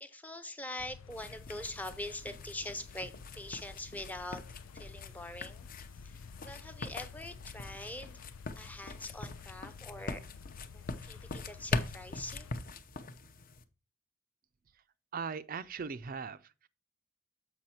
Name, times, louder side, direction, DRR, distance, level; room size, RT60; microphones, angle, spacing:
voice 1, 0.0-4.4 4.7-5.7 6.0-6.2 6.4-8.2 8.6-10.2 10.7-12.5, left 1 dB, 10° left, 0.6 m, -43 dB
sound 1, 0.8-12.5, left 5 dB, 85° left, 0.5 m, -51 dB
sound 2, 1.1-13.6, left 3 dB, 45° left, 0.7 m, -42 dB
voice 2, 15.1-16.7, right 6 dB, 45° right, 0.4 m, -39 dB
7.6 x 5.7 x 4.3 m
head